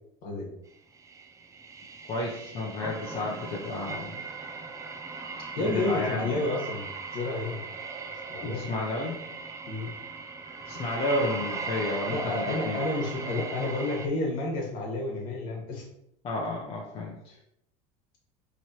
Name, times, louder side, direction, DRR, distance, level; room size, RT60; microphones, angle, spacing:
sound 1, 0.9-14.1, right 4 dB, 15° right, 0.4 m, -38 dB
voice 1, 2.1-4.1 5.5-6.3 8.4-9.2 10.6-12.8 16.2-17.4, left 2 dB, 30° left, -2 dB, 0.7 m, -32 dB
voice 2, 5.6-7.6 8.3-8.6 9.7-9.9 12.1-15.9, left 2 dB, 55° left, -1 dB, 1.4 m, -30 dB
4.2 x 3.1 x 2.8 m, 0.78 s
supercardioid pair, 115°, 17 cm